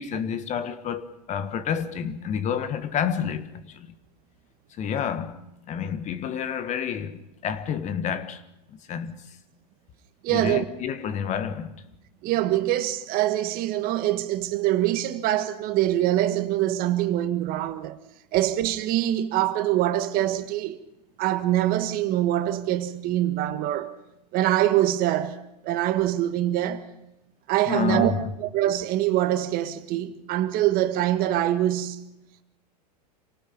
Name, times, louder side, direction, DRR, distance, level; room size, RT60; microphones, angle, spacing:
voice 1, 0.0-3.9 4.8-5.4 5.7-8.4 8.7-9.2 10.3-11.8 27.7-28.3, left 7 dB, 35° left, 1.6 m, -29 dB
voice 2, 10.2-10.6 12.2-18.0 18.3-20.8 21.2-23.9 24.3-25.4 25.6-26.9 27.5-28.1 28.4-32.0, right 13 dB, 45° right, 1.5 m, -24 dB
27.5 x 18.5 x 5.4 m
hypercardioid pair, 90°, 21 cm